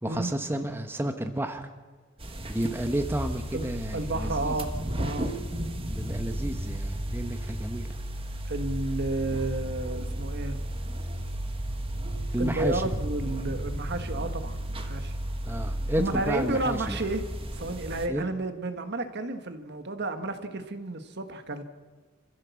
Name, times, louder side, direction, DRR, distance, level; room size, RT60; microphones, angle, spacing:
voice 1, 0.0-1.7 2.5-4.6 5.9-7.9 12.3-12.8 15.5-17.0 18.1-18.2, right 1 dB, 10° right, 6 dB, 1.1 m, -31 dB
sound 1, 2.2-18.1, right 1 dB, 25° right, 1.6 m, -33 dB
voice 2, 3.5-5.3 8.5-10.6 12.4-15.1 16.0-17.2 17.5-21.6, right 2 dB, 55° right, 8 dB, 1.6 m, -32 dB
26.5 x 15.5 x 7.1 m, 1.4 s
head